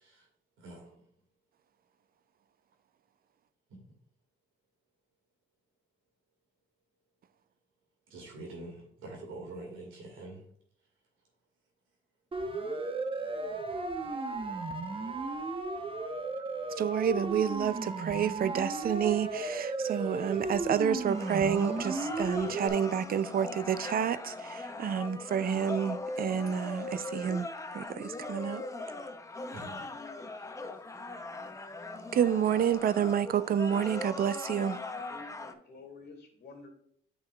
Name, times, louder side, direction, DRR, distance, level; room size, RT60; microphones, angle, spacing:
voice 1, 8.1-10.4 29.5-29.8, right 2 dB, 85° right, 2.0 m, -44 dB
Siren, 12.3-22.7, right 3 dB, 25° right, 0.9 m, -35 dB
voice 2, 16.8-27.5 27.7-28.6 32.1-34.8, right 8 dB, 50° right, 0.4 m, -29 dB
sound 1, 21.1-35.5, left 2 dB, 15° left, 0.7 m, -40 dB
voice 3, 35.1-36.7, left 4 dB, 55° left, 2.1 m, -50 dB
8.9 x 5.4 x 2.3 m
cardioid pair, 90°, 20 cm